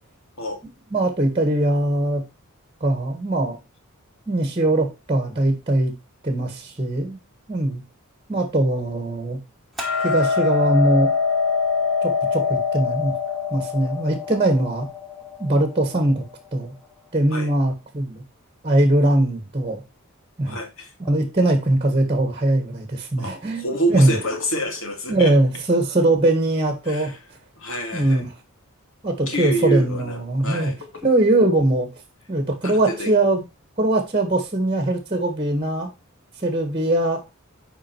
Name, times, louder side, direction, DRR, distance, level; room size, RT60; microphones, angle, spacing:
voice 1, 0.9-2.2 2.8-3.6 4.3-5.9 6.2-7.2 7.5-7.8 8.3-9.4 10.0-11.1 12.0-13.2 13.5-14.9 15.4-16.2 16.5-16.7 17.1-18.2 18.6-19.8 20.4-20.6 21.0-24.2 25.1-27.1 27.9-28.3 29.0-30.7 31.0-31.9 32.3-33.4 33.8-35.9 36.4-37.2, right 1 dB, 25° right, 1.6 m, -21 dB
Hammer, 9.8-16.0, left 5 dB, ahead, 2.6 m, -24 dB
voice 2, 20.5-20.9 23.2-25.3 26.9-27.2 27.6-28.2 29.3-31.0 32.6-33.1, right 1 dB, 65° left, 2.6 m, -27 dB
8.8 x 5.2 x 4.5 m
head